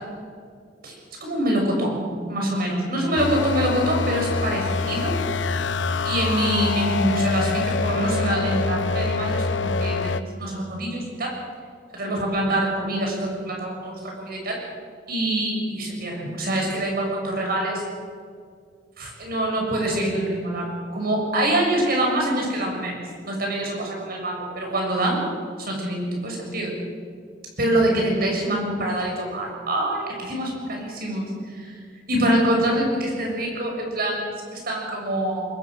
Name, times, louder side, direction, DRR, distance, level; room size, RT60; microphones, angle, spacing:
voice 1, 0.8-5.2 6.0-11.3 11.9-14.6 15.1-17.8 19.0-23.0 23.2-25.2 25.6-26.7 27.6-31.7 32.1-35.5, right 1 dB, 55° right, 0 dB, 6.8 m, -25 dB
sound 1, 3.2-10.2, left 4 dB, 75° left, 0.8 m, -25 dB
23.5 x 21.0 x 6.4 m, 2.2 s
head